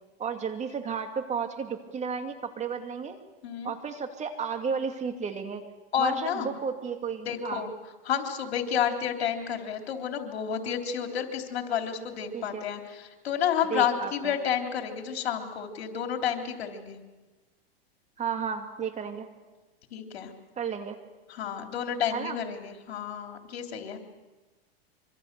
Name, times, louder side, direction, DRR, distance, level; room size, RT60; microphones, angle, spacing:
voice 1, 0.2-3.2 3.6-5.6 6.0-7.6 12.3-12.6 13.7-14.4 18.2-19.3 20.6-21.0 22.1-22.4, right 6 dB, 20° right, 6 dB, 2.5 m, -33 dB
voice 2, 5.9-6.5 7.3-7.7 8.1-17.0 19.9-20.3 21.3-24.0, left 8 dB, 80° left, 4 dB, 3.5 m, -30 dB
25.0 x 24.5 x 6.8 m, 1.2 s
supercardioid pair, 125°, 31 cm